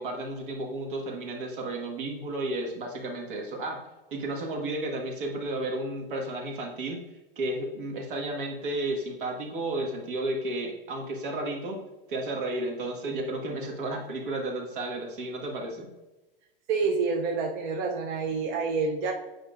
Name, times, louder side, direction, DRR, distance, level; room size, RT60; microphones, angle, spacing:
voice 1, 0.0-3.8 4.1-7.1 7.4-11.8 12.1-15.9, right 2 dB, 60° right, 1 dB, 1.6 m, -32 dB
voice 2, 16.7-19.1, right 4 dB, 25° right, 1 dB, 0.5 m, -28 dB
8.6 x 5.3 x 2.5 m, 1.1 s
hypercardioid pair, 150°, 29 cm